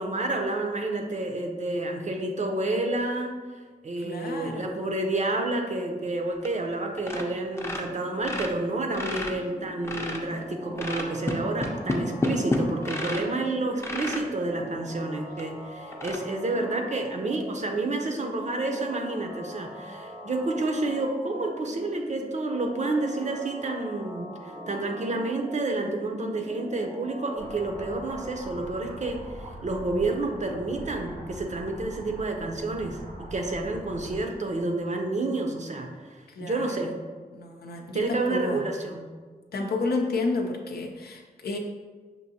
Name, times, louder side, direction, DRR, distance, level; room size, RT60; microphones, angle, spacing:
voice 1, 0.0-3.4 3.8-37.0 37.9-39.1, right 2 dB, 45° right, 3 dB, 0.6 m, -29 dB
voice 2, 4.0-4.9 36.4-36.8 37.3-38.0 38.3-38.6 39.5-41.6, left 3 dB, 80° left, 2 dB, 0.6 m, -31 dB
sound 1, 6.4-6.7 7.0-7.3 7.5-10.3 10.8-13.4 13.8-14.3 14.9-15.0 15.4-15.5 15.9-16.2, left 2 dB, 15° left, 0.6 m, -30 dB
sound 2, 9.0-28.9, equal, 70° right, 1.0 m, -42 dB
sound 3, 27.4-34.2, right 1 dB, 85° right, 1.5 m, -42 dB
5.9 x 2.6 x 2.7 m, 1.4 s
cardioid pair, 60°, 16 cm